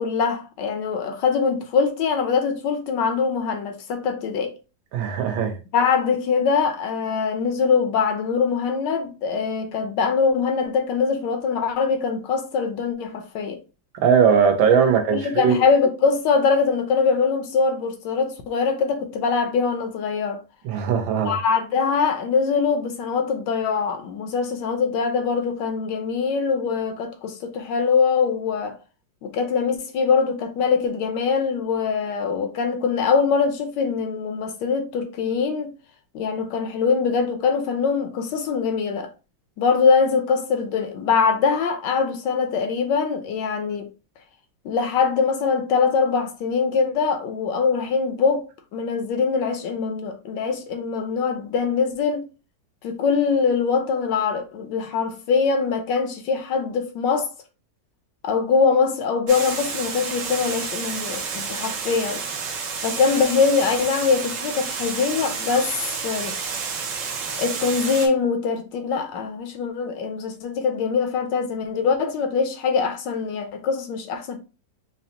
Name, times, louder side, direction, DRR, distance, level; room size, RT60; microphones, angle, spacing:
voice 1, 0.0-4.5 5.7-13.6 15.1-20.4 21.3-28.8 29.2-35.7 36.1-39.1 39.6-43.9 44.6-48.5 48.7-52.3 52.8-57.3 58.2-62.2 62.8-65.8 66.0-66.4 67.4-74.4, left 5 dB, 75° left, 1.2 m, -23 dB
voice 2, 4.9-5.6 14.0-15.6 20.6-21.4, right 7 dB, 90° right, 1.6 m, -19 dB
Water, 59.3-68.1, right 5 dB, 70° right, 1.4 m, -30 dB
5.2 x 2.1 x 2.8 m
omnidirectional pair, 2.1 m